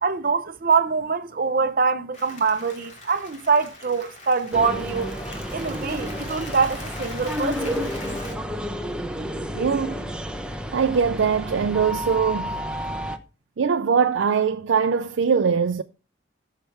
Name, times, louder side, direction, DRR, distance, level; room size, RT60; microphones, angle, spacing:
voice 1, 0.0-5.1 5.5-7.9, right 5 dB, 50° right, 0.8 m, -24 dB
Applause, 2.1-8.3, left 2 dB, 40° left, 2.6 m, -41 dB
sound 1, 4.5-13.2, equal, 5° right, 0.8 m, -31 dB
voice 2, 9.5-10.1 10.7-12.6 13.6-15.8, right 6 dB, 80° right, 0.5 m, -22 dB
16.0 x 6.7 x 3.4 m
head